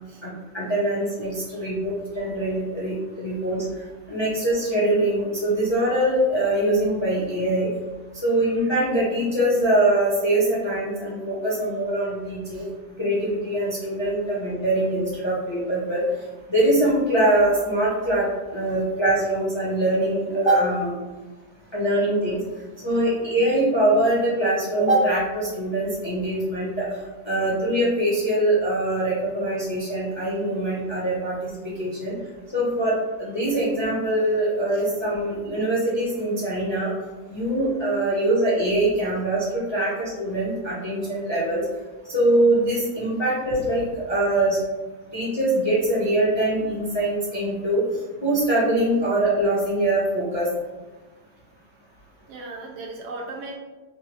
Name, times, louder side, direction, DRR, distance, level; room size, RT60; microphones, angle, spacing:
voice 1, 0.2-3.6 4.1-7.7 8.2-12.7 13.0-16.0 16.5-21.0 21.7-22.4 22.8-26.9 27.2-32.1 32.5-32.9 33.2-36.9 37.3-41.6 42.1-44.6 45.1-47.8 48.2-50.5, right 1 dB, 20° left, -8 dB, 0.7 m, -23 dB
voice 2, 52.3-53.6, right 2 dB, 75° right, -1 dB, 1.1 m, -38 dB
3.6 x 2.7 x 3.0 m, 1.2 s
omnidirectional pair, 1.8 m